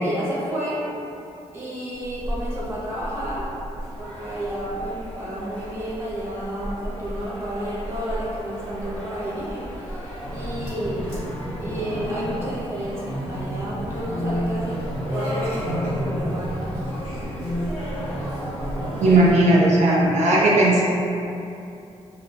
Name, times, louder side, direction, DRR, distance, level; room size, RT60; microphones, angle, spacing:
voice 1, 0.0-0.9 1.5-3.5 4.0-11.1 11.6-14.8 15.1-17.0 19.1-19.2, right 1 dB, 20° right, -8 dB, 0.5 m, -31 dB
sound 1, 2.0-19.3, equal, 90° left, 1.1 m, -31 dB
voice 2, 19.0-20.9, right 1 dB, 75° right, -4 dB, 0.4 m, -17 dB
2.4 x 2.1 x 2.6 m, 2.7 s
wide cardioid pair, 175°, 12 cm